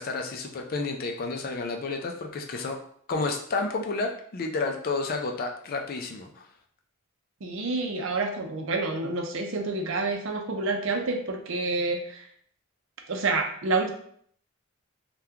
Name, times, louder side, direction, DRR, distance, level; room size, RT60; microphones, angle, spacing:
voice 1, 0.0-2.8 3.1-6.5, left 3 dB, 45° left, 3 dB, 0.4 m, -31 dB
voice 2, 7.4-12.2 13.1-13.9, right 3 dB, 65° right, 3 dB, 0.5 m, -28 dB
2.8 x 2.3 x 3.5 m, 0.62 s
head